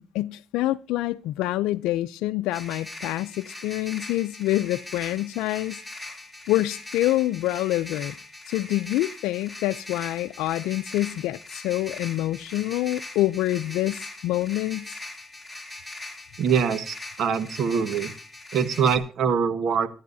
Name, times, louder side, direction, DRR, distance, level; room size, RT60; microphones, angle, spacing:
voice 1, 0.0-5.8 6.5-8.1 8.5-15.0, left 15 dB, 90° left, 0.5 m, -26 dB
sound 1, 2.5-19.0, left 2 dB, ahead, 5.6 m, -41 dB
voice 2, 16.4-18.1 18.5-19.9, right 7 dB, 70° right, 1.4 m, -24 dB
25.0 x 10.5 x 2.7 m
cardioid pair, 85°, 0 cm